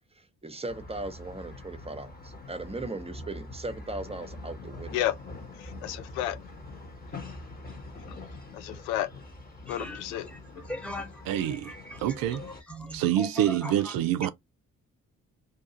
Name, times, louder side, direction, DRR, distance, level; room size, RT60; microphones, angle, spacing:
voice 1, 0.2-5.0, right 2 dB, 15° right, 0.8 m, -38 dB
sound 1, 0.7-12.6, left 2 dB, 25° left, 1.2 m, -44 dB
voice 2, 5.5-6.4 8.1-9.1 9.7-10.3, left 13 dB, 75° left, 0.6 m, -32 dB
voice 3, 9.7-13.9, left 1 dB, 5° left, 1.1 m, -41 dB
voice 4, 11.3-11.7 12.0-12.4 12.9-14.3, right 11 dB, 60° right, 0.5 m, -26 dB
2.8 x 2.3 x 2.8 m
hypercardioid pair, 40°, 39 cm